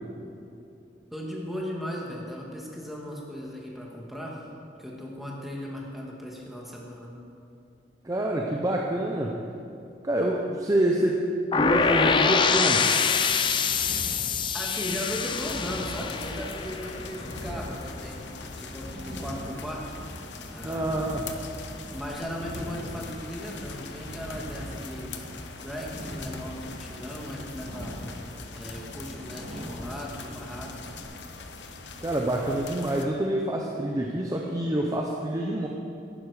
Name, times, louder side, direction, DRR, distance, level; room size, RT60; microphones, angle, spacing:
voice 1, 1.1-4.4 4.8-7.1 14.5-18.2 18.6-19.9 20.5-21.0 21.9-25.1 25.6-28.0 28.5-30.7, equal, ahead, -3 dB, 1.6 m, -37 dB
voice 2, 8.0-9.4 10.0-11.2 11.5-12.9 20.6-21.2 32.0-35.7, right 1 dB, 20° right, -1 dB, 0.7 m, -27 dB
sound 1, 11.5-17.4, left 5 dB, 25° left, 0.4 m, -25 dB
sound 2, 13.1-31.0, equal, 70° right, 2.0 m, -41 dB
sound 3, 15.1-33.1, left 4 dB, 80° left, 0.9 m, -43 dB
11.0 x 10.0 x 4.8 m, 2.6 s
head